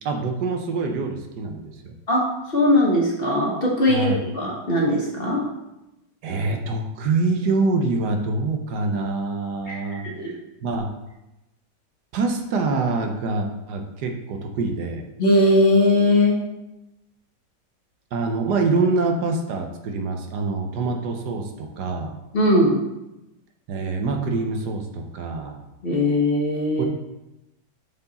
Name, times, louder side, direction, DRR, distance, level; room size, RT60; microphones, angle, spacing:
voice 1, 0.0-1.9 3.9-4.2 6.2-10.0 10.6-10.9 12.1-15.1 18.1-22.1 23.7-25.6 26.8-26.9, right 3 dB, 75° right, 4 dB, 1.3 m, -25 dB
voice 2, 2.5-5.4 9.7-10.3 15.2-16.4 22.3-22.8 25.8-26.8, left 1 dB, 40° left, -3 dB, 1.1 m, -20 dB
6.7 x 4.6 x 4.1 m, 0.94 s
omnidirectional pair, 1.9 m